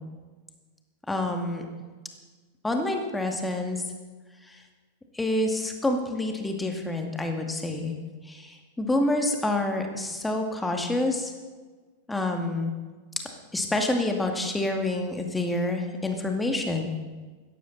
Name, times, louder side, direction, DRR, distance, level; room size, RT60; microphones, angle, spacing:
voice 1, 1.1-1.6 2.6-3.8 4.5-4.6 5.1-8.0 8.3-11.3 12.1-12.7 13.5-16.8, left 2 dB, 10° left, 3 dB, 2.2 m, -27 dB
16.0 x 14.0 x 4.2 m, 1.4 s
figure-of-eight pair, 90°, 0 cm